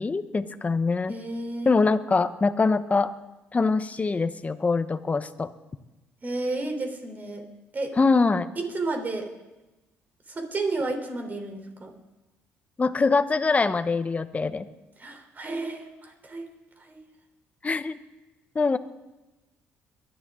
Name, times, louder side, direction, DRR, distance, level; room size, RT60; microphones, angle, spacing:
voice 1, 0.0-1.1 1.6-3.1 3.5-5.5 8.0-8.5 12.8-14.7 17.6-18.0 18.5-18.8, left 4 dB, 30° left, 11 dB, 0.9 m, -23 dB
voice 2, 1.1-1.7 6.2-7.5 7.7-8.0 8.6-9.3 10.3-11.9 15.0-16.5 16.8-17.0, right 2 dB, 35° right, 4 dB, 3.6 m, -32 dB
22.5 x 11.0 x 3.8 m, 1.0 s
supercardioid pair, 65°, 5 cm